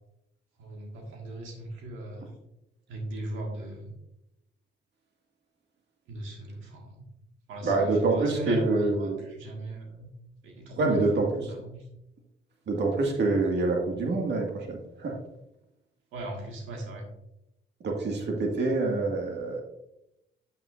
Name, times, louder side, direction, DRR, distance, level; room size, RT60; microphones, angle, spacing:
voice 1, 0.6-2.3 2.9-3.9 6.1-7.0 7.5-10.1 10.4-11.8 16.1-17.1 18.2-18.3, right 1 dB, 85° right, 0 dB, 1.7 m, -38 dB
voice 2, 7.6-9.2 10.8-11.4 12.7-15.1 17.8-19.6, right 3 dB, 60° right, 1 dB, 1.8 m, -26 dB
8.9 x 7.7 x 2.5 m, 0.86 s
cardioid pair, 90°, 20 cm